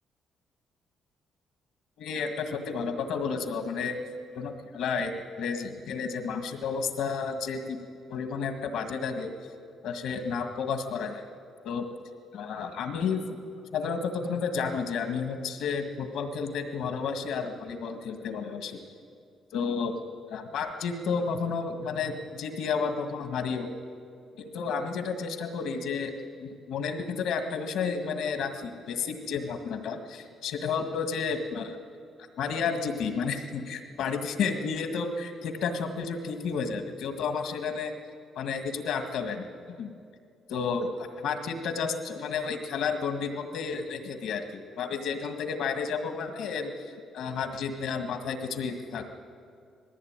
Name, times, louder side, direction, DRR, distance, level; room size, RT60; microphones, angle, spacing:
voice 1, 2.0-4.0 4.3-7.8 8.1-9.3 9.8-11.3 11.6-11.9 12.3-13.2 13.7-18.8 19.5-19.9 20.3-23.7 24.4-26.1 26.4-31.8 32.4-37.9 38.4-39.9 40.5-49.1, left 5 dB, 80° left, 6 dB, 1.8 m, -31 dB
19.5 x 15.0 x 9.0 m, 2.3 s
cardioid pair, 90°, 0 cm